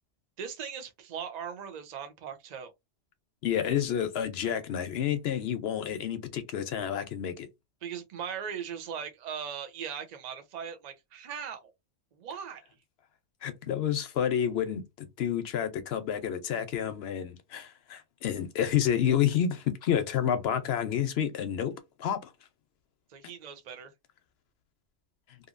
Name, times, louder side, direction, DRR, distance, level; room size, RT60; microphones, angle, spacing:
voice 1, 0.4-2.7 7.8-11.7 12.1-12.6 23.1-23.9, right 7 dB, 45° right, 0.6 m, -39 dB
voice 2, 3.4-7.5 13.4-21.7 22.0-22.3, left 9 dB, 65° left, 0.8 m, -29 dB
2.8 x 2.5 x 2.4 m
omnidirectional pair, 1.2 m